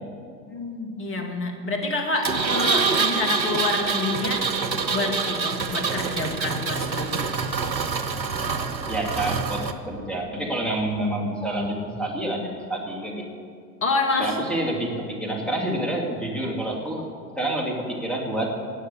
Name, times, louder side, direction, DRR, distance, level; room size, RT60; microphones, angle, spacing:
voice 1, 0.5-4.4 4.9-7.3 13.8-14.4, left 3 dB, 25° left, 3 dB, 2.1 m, -27 dB
Engine, 2.2-9.7, right 5 dB, 90° right, 1.0 m, -26 dB
voice 2, 8.9-13.3 14.2-17.0 17.3-18.5, right 1 dB, ahead, -1 dB, 3.2 m, -28 dB
18.5 x 6.7 x 8.1 m, 2.2 s
figure-of-eight pair, 80°, 50 cm